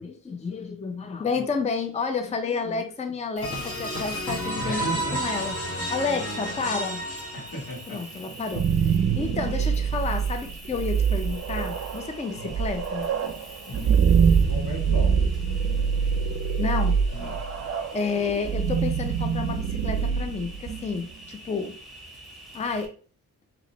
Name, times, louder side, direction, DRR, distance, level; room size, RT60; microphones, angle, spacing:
voice 1, 0.0-7.0 7.9-13.1 16.6-17.0 17.9-21.8 22.5-22.9, left 4 dB, 20° left, 6 dB, 0.5 m, -30 dB
sound 1, 3.4-8.0, equal, 45° left, 1.3 m, -31 dB
Cricket, 3.4-22.9, right 1 dB, ahead, 1.5 m, -45 dB
voice 2, 4.5-5.2 7.3-8.0 12.3-12.5 13.7-14.0 14.5-15.1 17.1-17.4, equal, 85° left, -2 dB, 1.8 m, -34 dB
sound 2, 8.3-21.1, right 6 dB, 50° right, 0.5 m, -25 dB
3.2 x 2.9 x 3.8 m, 0.40 s
wide cardioid pair, 110°, 32 cm